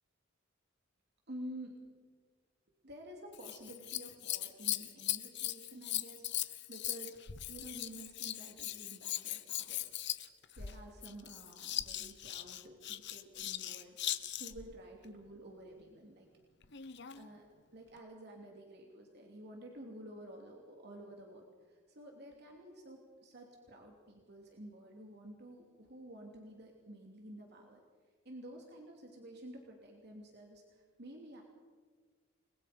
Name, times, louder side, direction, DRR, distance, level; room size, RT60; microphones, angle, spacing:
voice 1, 1.3-1.8 2.8-7.2 7.5-9.8 10.6-16.3 16.8-17.4 17.7-27.8 28.2-31.4, right 1 dB, 55° right, 1 dB, 3.1 m, -51 dB
Scissors, 3.3-14.7 16.6-17.3 18.0-18.1, left 13 dB, 60° left, 1.0 m, -39 dB
30.0 x 21.5 x 5.3 m, 1.5 s
head